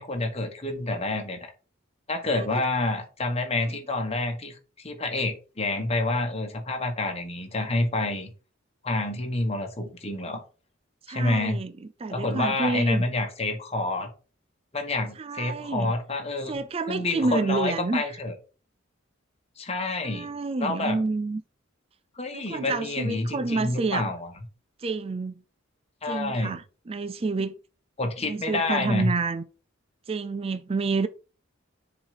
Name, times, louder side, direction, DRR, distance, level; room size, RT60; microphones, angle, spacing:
voice 1, 0.0-1.5 2.1-8.3 8.8-10.4 11.1-11.6 12.1-14.1 14.7-16.6 16.9-18.3 19.6-20.3 20.6-21.0 22.1-24.3 26.0-26.6 28.0-29.1, left 2 dB, 30° left, 1.5 m, -28 dB
voice 2, 11.1-11.7 12.0-13.0 15.2-15.9 16.5-18.1 20.0-21.4 22.3-24.1 24.8-25.4 26.1-27.5 28.2-29.4 30.1-31.1, right 3 dB, 30° right, 0.4 m, -29 dB
7.1 x 4.0 x 5.0 m
head